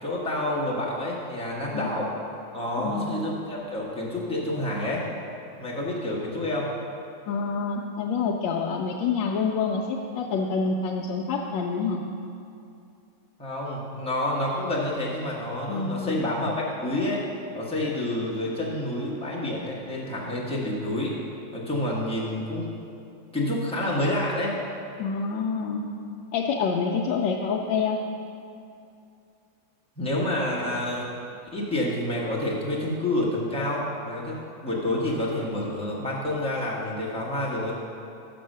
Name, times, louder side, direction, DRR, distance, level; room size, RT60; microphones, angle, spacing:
voice 1, 0.0-2.1 2.5-5.0 5.6-6.7 13.4-17.2 17.5-21.2 21.5-22.7 23.3-24.5 30.0-31.1 31.5-37.8, left 1 dB, 5° left, -6 dB, 0.8 m, -28 dB
voice 2, 2.8-3.1 7.3-12.0 15.7-16.2 25.0-25.8 26.3-28.0, left 5 dB, 80° left, -1 dB, 1.2 m, -27 dB
6.3 x 6.0 x 6.5 m, 2.6 s
omnidirectional pair, 2.1 m